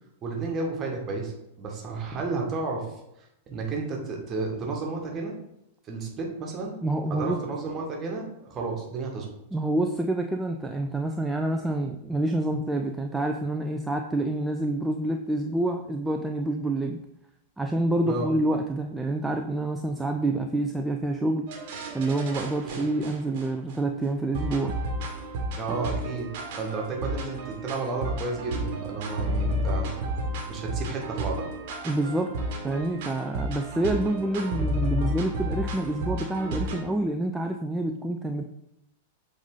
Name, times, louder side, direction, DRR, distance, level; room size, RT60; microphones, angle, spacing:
voice 1, 0.2-1.3 1.6-2.9 3.5-5.3 5.9-6.7 7.1-9.3 18.1-18.3 22.6-22.8 25.6-26.3 26.6-29.9 30.5-31.5, right 3 dB, 25° right, 0 dB, 1.6 m, -32 dB
voice 2, 6.8-7.4 9.5-17.0 17.6-21.5 21.9-24.7 31.8-32.3 32.6-38.4, right 1 dB, 5° right, 4 dB, 0.4 m, -27 dB
sound 1, 21.5-23.8 24.3-36.8, equal, 50° right, 1.3 m, -32 dB
7.2 x 3.8 x 3.8 m, 0.83 s
figure-of-eight pair, 95°, 0 cm